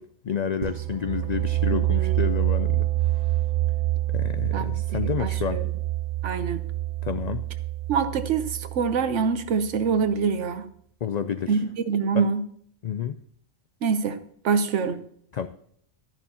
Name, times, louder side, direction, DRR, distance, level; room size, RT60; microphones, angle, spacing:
voice 1, 0.2-3.3 4.1-5.6 7.0-7.4 11.0-11.6 12.1-12.3 12.8-13.2 15.3-15.5, left 8 dB, 80° left, 0.3 m, -30 dB
sound 1, 0.6-10.2, right 15 dB, 60° right, 0.5 m, -27 dB
voice 2, 1.7-2.2 4.5-5.6 6.2-6.6 7.9-10.7 11.5-11.6 11.9-12.4 13.8-14.2 14.4-15.0, right 6 dB, 75° right, 1.1 m, -25 dB
12.5 x 10.5 x 2.9 m
omnidirectional pair, 1.3 m